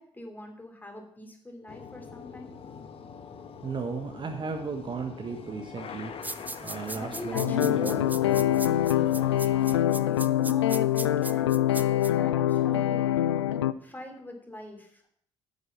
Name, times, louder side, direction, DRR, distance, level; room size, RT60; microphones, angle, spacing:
voice 1, 0.0-2.6 6.9-8.7 9.3-11.6 12.1-13.1 13.8-15.0, left 1 dB, 10° left, 3 dB, 3.0 m, -43 dB
sound 1, 1.7-9.8, left 6 dB, 40° left, 1.2 m, -43 dB
voice 2, 3.6-6.2 6.6-8.1, right 5 dB, 35° right, 5 dB, 1.3 m, -35 dB
sound 2, 6.2-12.1, right 2 dB, 10° right, 0.6 m, -38 dB
sound 3, 7.3-13.7, left 12 dB, 75° left, 0.4 m, -24 dB
9.7 x 8.2 x 5.9 m, 0.65 s
figure-of-eight pair, 45°, 14 cm